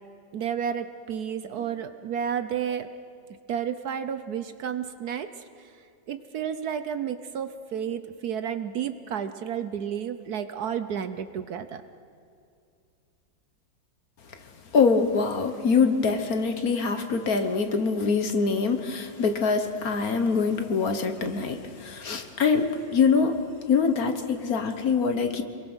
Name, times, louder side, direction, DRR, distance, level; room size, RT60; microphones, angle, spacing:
voice 1, 0.3-2.9 3.5-5.7 6.1-11.8, right 8 dB, 65° right, 10 dB, 1.2 m, -31 dB
voice 2, 14.7-25.4, left 5 dB, 55° left, 8 dB, 1.6 m, -24 dB
27.5 x 22.5 x 6.2 m, 2.4 s
omnidirectional pair, 2.0 m